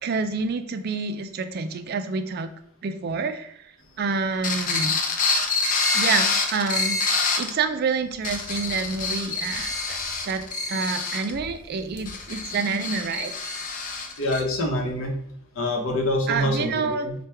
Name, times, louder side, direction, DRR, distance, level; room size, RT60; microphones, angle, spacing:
voice 1, 0.0-2.5 2.8-3.7 4.0-4.9 5.9-10.0 10.3-13.3 16.3-17.1, right 4 dB, 45° right, 9 dB, 0.3 m, -28 dB
sound 1, 4.4-7.5 8.1-14.4, left 4 dB, 40° left, 0.5 m, -26 dB
voice 2, 14.2-15.2 15.6-17.1, left 1 dB, 70° left, 2 dB, 0.8 m, -25 dB
3.4 x 2.2 x 4.3 m, 0.71 s
head